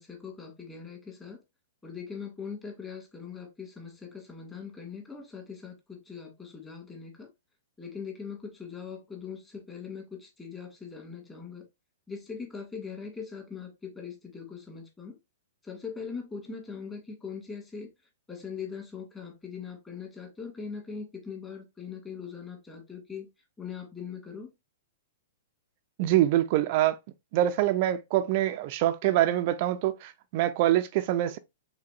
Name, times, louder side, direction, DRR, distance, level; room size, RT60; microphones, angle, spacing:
voice 1, 0.0-1.4 1.8-7.3 7.8-11.7 12.1-15.2 15.6-17.9 18.3-23.3 23.6-24.5, left 6 dB, 15° left, 1.9 m, -41 dB
voice 2, 26.0-27.0 27.3-31.4, right 13 dB, 50° right, 0.3 m, -25 dB
4.9 x 3.9 x 2.4 m
hypercardioid pair, 115°, 0 cm